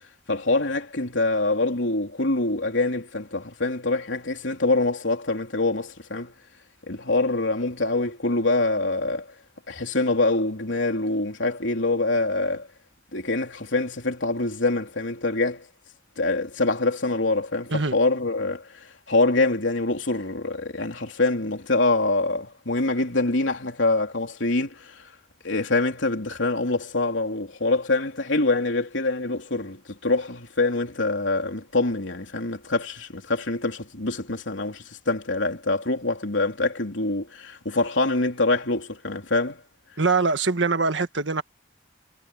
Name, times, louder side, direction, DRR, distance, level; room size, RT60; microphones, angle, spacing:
voice 1, 0.3-6.3 6.9-9.3 9.7-12.7 13.1-15.6 16.2-25.0 25.4-39.6, left 2 dB, 85° left, 3.4 m, -25 dB
voice 2, 40.0-41.4, right 4 dB, 80° right, 1.5 m, -23 dB
head